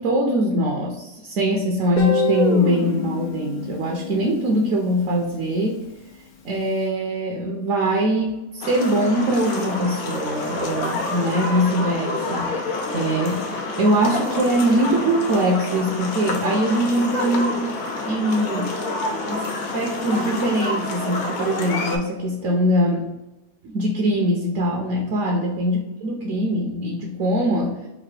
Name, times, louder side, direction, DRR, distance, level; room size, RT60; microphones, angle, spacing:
voice 1, 0.0-5.9 6.4-17.6 18.0-18.8 19.3-19.4 19.7-23.1 23.6-27.8, equal, 70° right, 0 dB, 1.1 m, -22 dB
Guitar, 2.0-4.9, left 2 dB, 55° left, 0.5 m, -25 dB
sound 1, 8.6-22.0, left 2 dB, 80° left, 1.2 m, -28 dB
3.8 x 2.6 x 4.7 m, 1.0 s
omnidirectional pair, 1.5 m